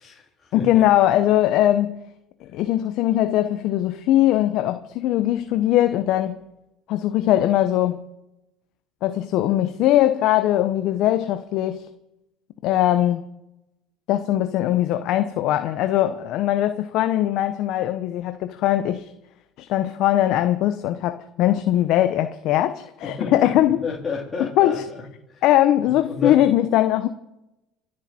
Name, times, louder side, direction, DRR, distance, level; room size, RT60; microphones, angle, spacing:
voice 1, 0.0-0.7 23.0-23.5 23.8-25.0 25.3-25.4 26.1-26.4, left 4 dB, 25° left, 3.1 m, -31 dB
voice 2, 0.5-2.0 2.4-6.4 6.9-8.0 9.0-11.9 12.6-13.2 14.1-19.1 19.6-23.8 24.6-24.8 25.4-27.1, left 13 dB, 60° left, 0.8 m, -20 dB
26.0 x 9.7 x 4.3 m
supercardioid pair, 110°, 0 cm